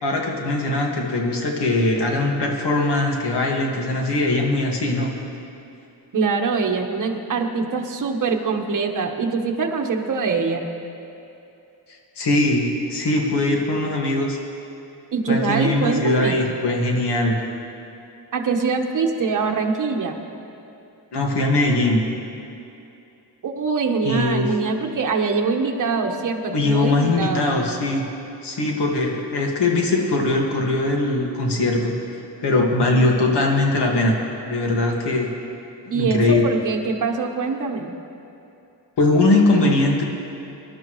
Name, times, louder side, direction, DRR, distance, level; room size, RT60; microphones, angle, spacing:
voice 1, 0.0-5.1 12.2-14.4 15.3-17.4 21.1-22.0 24.0-24.5 26.5-28.1 28.4-31.9 32.4-34.1 34.4-35.3 35.9-36.4 39.0-40.0, left 2 dB, 90° left, 0 dB, 1.9 m, -21 dB
voice 2, 6.1-10.7 15.1-16.4 18.3-20.2 23.4-27.5 35.9-37.9, right 4 dB, 50° right, 2 dB, 1.2 m, -23 dB
23.0 x 12.0 x 3.1 m, 2.7 s
wide cardioid pair, 135°, 40 cm